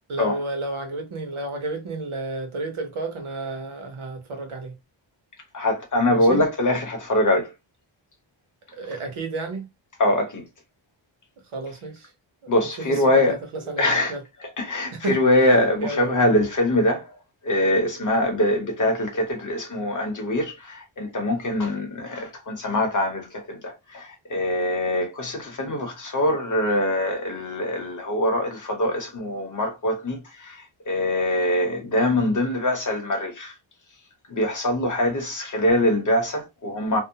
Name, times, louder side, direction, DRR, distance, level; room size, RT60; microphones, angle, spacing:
voice 1, 0.1-4.8 6.1-6.4 8.7-9.7 11.5-12.1 12.4-12.5 12.8-14.2 14.9-15.2 15.4-15.5 15.8-16.2, right 2 dB, 85° right, 0.9 m, -32 dB
voice 2, 5.5-7.5 10.0-10.4 12.5-13.3 13.8-14.1 14.6-17.1 17.4-33.5 34.3-37.0, left 1 dB, 40° left, 0.8 m, -23 dB
2.6 x 2.0 x 2.7 m
wide cardioid pair, 170°, 48 cm